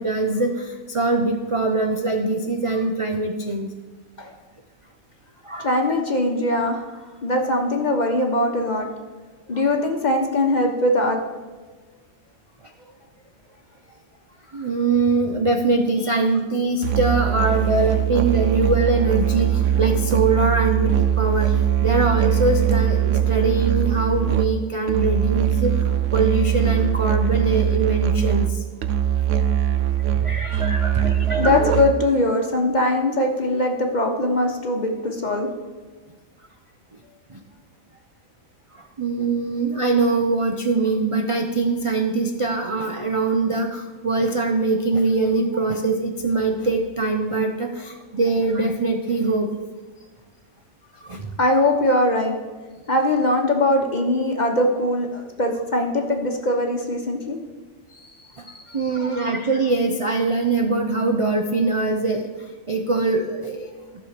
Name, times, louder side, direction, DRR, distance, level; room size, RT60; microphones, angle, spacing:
voice 1, 0.0-3.7 5.4-5.7 14.5-28.6 30.1-31.5 37.3-37.4 38.7-49.5 51.0-51.3 58.4-58.5 58.7-63.9, right 3 dB, 40° right, 3 dB, 0.5 m, -23 dB
voice 2, 5.6-6.8 7.2-8.9 9.5-11.2 31.4-35.5 51.4-52.3 52.9-57.4 58.5-58.8, left 1 dB, 35° left, 3 dB, 1.1 m, -21 dB
Musical instrument, 16.8-32.1, right 10 dB, 65° right, 0.9 m, -21 dB
14.0 x 6.2 x 5.0 m, 1.3 s
omnidirectional pair, 1.5 m